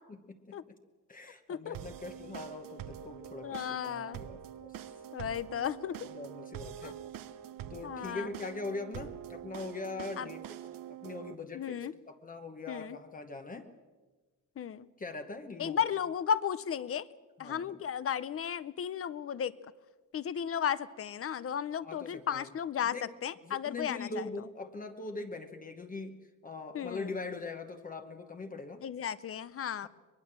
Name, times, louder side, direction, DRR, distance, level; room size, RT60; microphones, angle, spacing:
voice 1, 1.1-4.8 6.0-7.0 7.7-10.6 10.9-13.7 15.0-15.8 17.4-17.8 21.8-22.5 22.9-23.1 23.4-26.1 26.4-28.8 29.8-29.9, left 3 dB, 25° left, 6 dB, 1.1 m, -42 dB
sound 1, 1.7-11.3, right 10 dB, 90° right, 1.0 m, -45 dB
voice 2, 3.4-4.2 5.1-6.0 6.8-6.9 7.8-8.3 10.2-10.3 11.5-11.9 12.7-13.0 14.6-14.9 15.6-17.1 17.4-19.5 20.1-22.9 23.2-24.2 26.7-27.2 28.8-29.9, left 8 dB, 45° left, 17 dB, 0.7 m, -34 dB
23.5 x 21.5 x 7.5 m, 1.3 s
wide cardioid pair, 165°, 33 cm